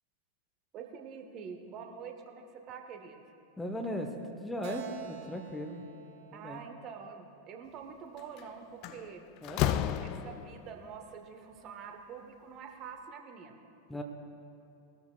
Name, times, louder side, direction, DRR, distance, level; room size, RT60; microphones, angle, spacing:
voice 1, 0.7-3.2 6.3-9.3 9.9-13.6, right 6 dB, 35° right, 5 dB, 1.3 m, -46 dB
voice 2, 3.6-5.8 6.3-6.6 9.4-9.7 13.9-14.0, equal, 5° left, 3 dB, 1.0 m, -38 dB
Keyboard (musical), 4.6-8.1, right 9 dB, 55° right, 1.0 m, -48 dB
Slam, 8.2-8.4 8.8-10.7, left 11 dB, 40° left, 0.4 m, -32 dB
20.0 x 13.0 x 2.5 m, 2.7 s
figure-of-eight pair, 90°, 0 cm